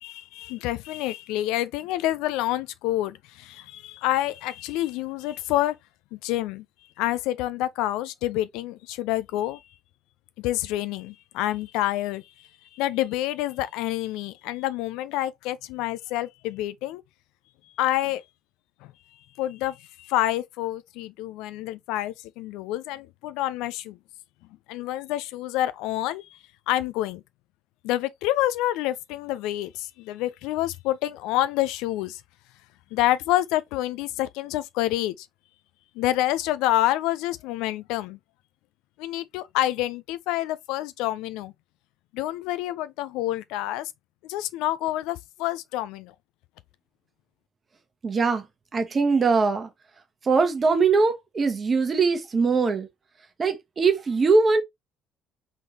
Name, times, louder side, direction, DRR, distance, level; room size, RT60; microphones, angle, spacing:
voice 1, 0.0-5.8 6.1-6.6 7.0-9.6 10.4-17.0 17.8-18.2 18.8-18.9 19.4-24.0 24.7-26.4 26.7-27.2 27.8-32.2 32.9-35.3 36.0-38.2 39.0-41.5 42.1-43.9 44.2-46.1, left 15 dB, 65° left, 0.3 m, -28 dB
voice 2, 48.0-48.5 48.7-49.7 50.2-52.9 53.4-54.6, right 4 dB, 35° right, 1.2 m, -21 dB
3.7 x 3.6 x 2.8 m
figure-of-eight pair, 55°, 0 cm